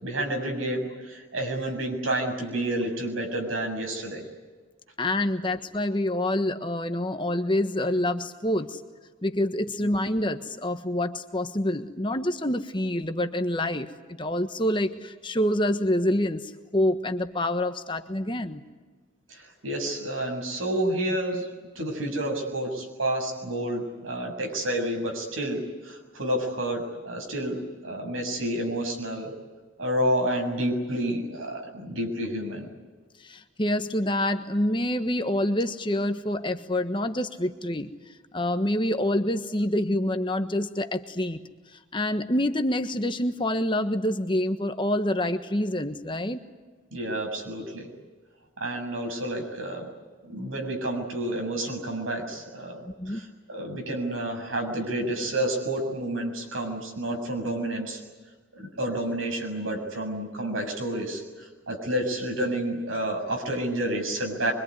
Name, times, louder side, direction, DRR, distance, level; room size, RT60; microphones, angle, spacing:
voice 1, 0.0-4.3 19.3-21.5 21.8-29.3 29.8-32.7 46.9-47.9 48.6-49.9 50.2-58.0 58.5-64.5, right 1 dB, 85° right, 3 dB, 7.0 m, -30 dB
voice 2, 5.0-8.8 9.2-18.6 33.2-37.9 38.3-41.4 41.7-46.4 53.0-53.3, left 1 dB, 25° left, 7 dB, 1.3 m, -27 dB
24.5 x 24.5 x 9.7 m, 1.4 s
head